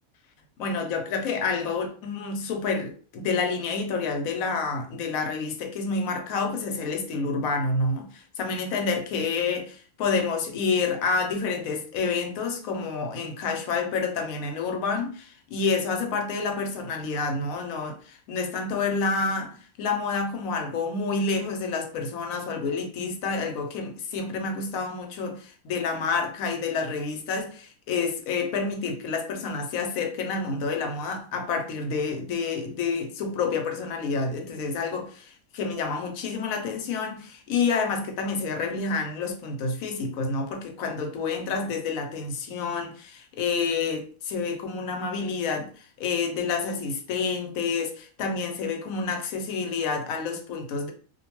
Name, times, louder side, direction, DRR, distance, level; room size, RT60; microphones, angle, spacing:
voice 1, 0.6-50.9, left 4 dB, 90° left, 1.0 m, -29 dB
2.5 x 2.2 x 2.9 m
omnidirectional pair, 1.4 m